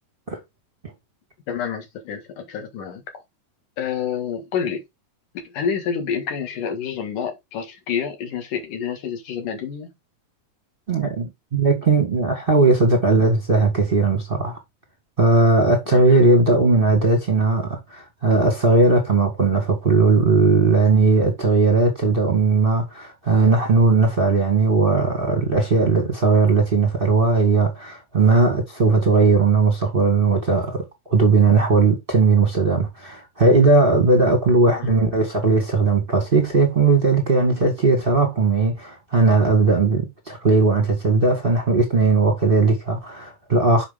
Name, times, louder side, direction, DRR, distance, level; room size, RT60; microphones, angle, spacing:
voice 1, 1.5-3.0 3.8-4.8 5.4-9.9 15.9-16.3 34.8-35.0, left 7 dB, 65° left, 3.3 m, -28 dB
voice 2, 10.9-14.6 15.2-43.8, right 3 dB, 35° right, 0.9 m, -18 dB
7.6 x 5.6 x 3.6 m
omnidirectional pair, 4.0 m